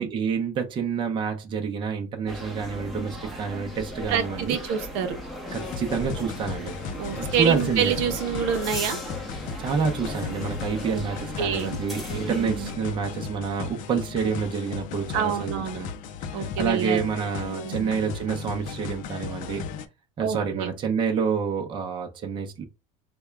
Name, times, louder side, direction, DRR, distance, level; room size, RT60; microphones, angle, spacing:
voice 1, 0.0-4.6 5.5-6.7 7.1-7.9 9.6-15.9 16.3-19.6 20.2-22.6, right 6 dB, 30° right, 0.7 m, -28 dB
sound 1, 2.3-12.8, equal, ahead, 0.8 m, -37 dB
voice 2, 4.1-5.2 7.0-9.0 10.8-11.0 11.4-11.7 12.1-12.7 15.1-15.8 16.3-17.0 17.4-17.9 20.2-20.7, right 8 dB, 70° right, 0.7 m, -27 dB
sound 2, 5.5-19.9, left 6 dB, 50° left, 0.5 m, -36 dB
3.4 x 2.2 x 3.3 m
supercardioid pair, 130°, 17 cm